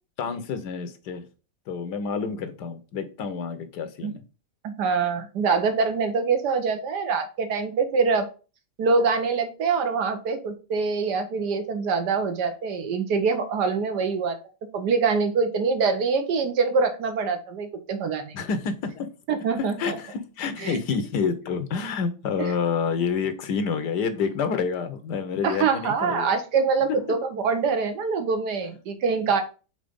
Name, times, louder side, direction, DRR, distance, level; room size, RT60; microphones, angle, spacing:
voice 1, 0.2-1.3 1.7-4.2 18.3-19.1 19.6-26.3 29.3-29.4, left 5 dB, 85° left, 10 dB, 1.5 m, -28 dB
voice 2, 4.6-8.3 8.8-14.4 14.7-18.4 19.3-20.0 20.6-20.8 25.4-29.4, right 5 dB, 85° right, 7 dB, 1.6 m, -24 dB
5.0 x 4.1 x 5.1 m, 0.34 s
omnidirectional pair, 1.8 m